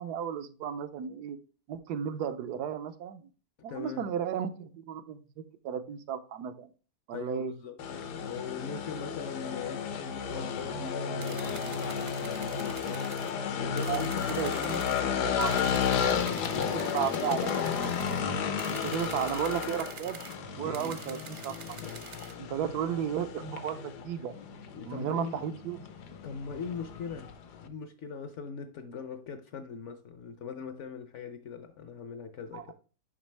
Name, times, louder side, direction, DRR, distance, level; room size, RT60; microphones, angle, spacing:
voice 1, 0.0-1.4 1.7-3.2 3.6-6.7 7.1-7.5 13.9-14.8 15.2-15.6 16.7-17.6 18.7-20.2 20.6-21.8 22.4-24.3 24.9-25.8 32.5-32.6, right 8 dB, 80° right, 1.2 m, -34 dB
voice 2, 3.7-4.1 7.1-7.8 8.1-13.1 13.6-15.4 16.5-16.7 20.6-20.9 24.7-25.4 26.1-27.3 27.6-32.7, left 6 dB, 60° left, 0.8 m, -41 dB
sound 1, 7.8-27.7, left 7 dB, 80° left, 1.4 m, -33 dB
sound 2, 11.2-13.3 13.8-15.0 15.4-18.2 18.6-20.4 20.7-22.3, right 6 dB, 55° right, 0.7 m, -47 dB
7.3 x 5.4 x 3.3 m
omnidirectional pair, 1.7 m